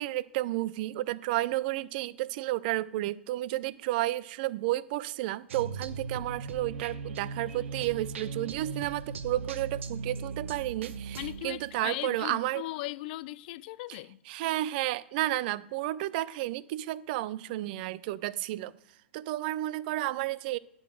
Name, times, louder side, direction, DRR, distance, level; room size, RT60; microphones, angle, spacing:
voice 1, 0.0-12.6 14.3-18.7 19.1-20.6, right 16 dB, 50° right, 0.4 m, -32 dB
sound 1, 5.5-12.0, right 4 dB, 75° right, 0.7 m, -39 dB
voice 2, 11.1-14.2, left 17 dB, 50° left, 0.4 m, -38 dB
10.5 x 3.9 x 6.2 m
hypercardioid pair, 125°, 7 cm